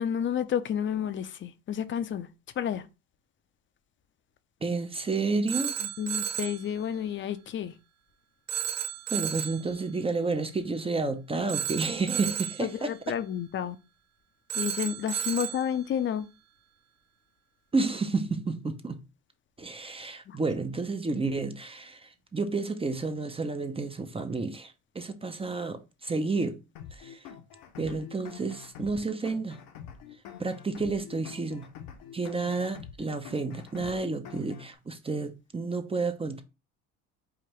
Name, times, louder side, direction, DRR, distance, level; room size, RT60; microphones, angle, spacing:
voice 1, 0.0-2.3 2.6-2.8 5.8-7.7 12.6-13.8 14.5-16.3 20.3-20.4, left 9 dB, 35° left, 0.5 m, -31 dB
voice 2, 4.6-5.7 9.1-12.9 15.1-15.3 17.7-19.0 19.6-26.6 26.9-27.3 27.8-29.6 30.4-31.7 32.1-36.4, right 3 dB, 15° right, 0.5 m, -31 dB
Telephone, 5.5-6.6 8.5-9.6 11.5-12.7 14.5-15.7, right 10 dB, 50° right, 0.7 m, -32 dB
sound 1, 26.8-34.8, left 8 dB, 75° left, 0.9 m, -46 dB
4.8 x 2.5 x 3.0 m
cardioid pair, 100°, 35 cm